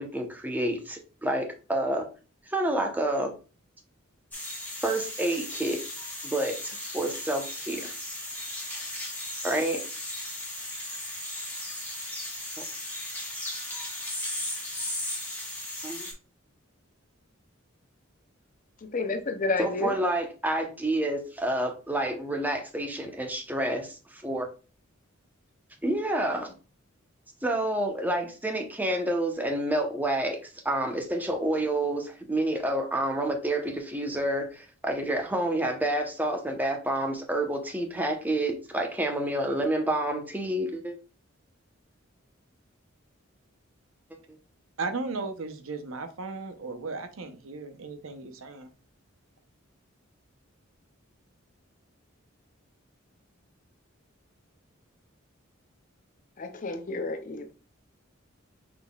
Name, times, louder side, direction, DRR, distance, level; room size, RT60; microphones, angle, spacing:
voice 1, 0.0-2.1 2.5-3.4 4.8-5.8 6.2-7.9 9.4-9.9 12.6-12.7 15.8-16.1 19.6-24.5 25.8-26.5 27.4-40.9, right 1 dB, 10° right, 0.8 m, -29 dB
sound 1, 4.3-16.1, left 1 dB, 10° left, 1.7 m, -36 dB
voice 2, 18.8-20.0 56.4-57.5, left 3 dB, 40° left, 0.6 m, -30 dB
voice 3, 44.8-48.7, right 3 dB, 85° right, 0.7 m, -36 dB
5.8 x 4.0 x 2.3 m
head